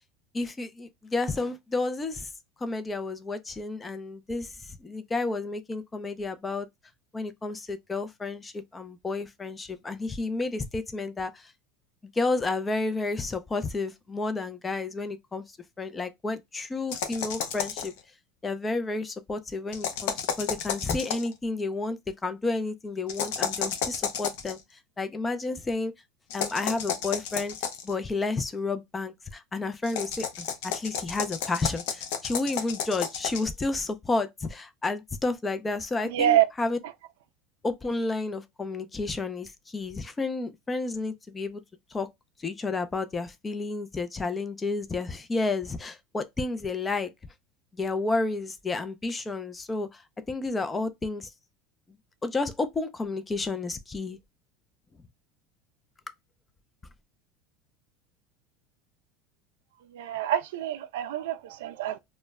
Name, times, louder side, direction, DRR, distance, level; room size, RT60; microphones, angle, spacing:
voice 1, 0.3-2.3 2.6-6.7 7.1-11.5 12.1-15.4 15.8-17.9 18.4-24.6 25.0-25.9 26.3-27.6 27.8-36.8 37.6-41.6 41.9-42.1 42.4-47.1 47.7-50.0 50.3-51.3 52.2-54.2, left 3 dB, 15° left, 0.3 m, -31 dB
sound 1, 16.9-18.0 19.7-21.3 23.1-24.5 26.3-27.9 29.8-33.5, left 8 dB, 80° left, 0.5 m, -32 dB
voice 2, 36.0-36.5 59.9-62.0, right 12 dB, 85° right, 0.3 m, -26 dB
2.1 x 2.0 x 3.4 m
supercardioid pair, 130°, 0 cm